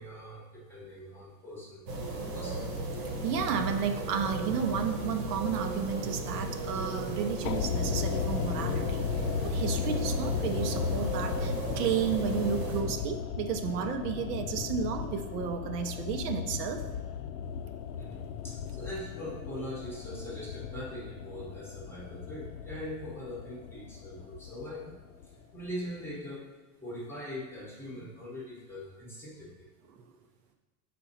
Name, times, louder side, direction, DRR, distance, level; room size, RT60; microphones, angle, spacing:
voice 1, 0.0-2.6 18.0-25.0 25.2-26.4 26.8-29.7, equal, 5° left, -5 dB, 0.9 m, -42 dB
sound 1, 1.9-12.8, right 2 dB, 90° right, 1.8 m, -35 dB
voice 2, 3.2-16.8, right 7 dB, 70° right, 6 dB, 0.8 m, -32 dB
sound 2, 6.4-11.6 11.9-12.0, right 3 dB, 25° right, 0.4 m, -49 dB
sound 3, 7.5-25.7 25.9-26.0, left 7 dB, 80° left, 0.6 m, -36 dB
6.1 x 4.3 x 4.2 m, 1.2 s
supercardioid pair, 165°, 48 cm